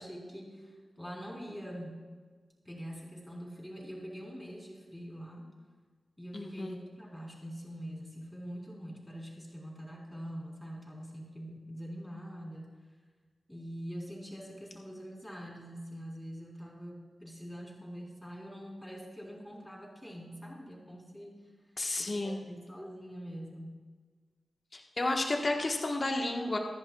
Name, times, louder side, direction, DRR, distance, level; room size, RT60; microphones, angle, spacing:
voice 1, 0.0-2.0 2.6-5.5 6.2-12.7 13.5-21.4 22.0-23.8, equal, 10° left, -3 dB, 3.9 m, -44 dB
voice 2, 6.3-6.8 21.8-22.4 24.7-26.6, left 2 dB, 45° left, 1 dB, 1.3 m, -32 dB
24.0 x 11.0 x 2.4 m, 1.5 s
wide cardioid pair, 75°, 0 cm